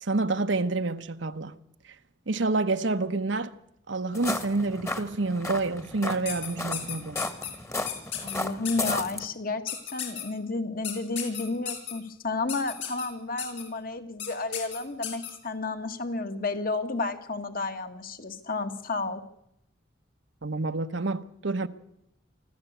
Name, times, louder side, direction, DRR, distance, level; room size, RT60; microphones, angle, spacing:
voice 1, 0.0-1.6 2.3-3.5 3.9-7.2 20.4-21.7, right 3 dB, 75° right, 1.0 m, -28 dB
sound 1, 4.1-9.3, left 2 dB, 15° left, 1.4 m, -34 dB
sound 2, 6.3-7.5 7.9-8.3 8.6-8.9 9.7-10.2 10.8-11.9 12.5-13.1 13.4-13.6 14.2-14.3 14.5-15.3, left 10 dB, 80° left, 6.6 m, -33 dB
voice 2, 8.2-19.2, left 3 dB, 50° left, 1.8 m, -32 dB
24.5 x 14.5 x 8.1 m
head